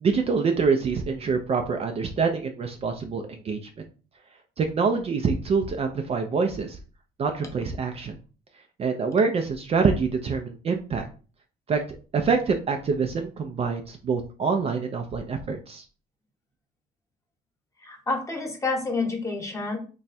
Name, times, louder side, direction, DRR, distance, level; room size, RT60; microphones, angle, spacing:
voice 1, 0.0-3.6 4.6-6.8 7.2-8.1 8.8-11.1 11.7-11.8 12.1-15.8, right 5 dB, 35° right, 5 dB, 0.5 m, -25 dB
voice 2, 17.8-19.8, left 3 dB, 20° left, 2 dB, 1.0 m, -28 dB
3.0 x 2.3 x 4.1 m, 0.36 s
cardioid pair, 110°, 17 cm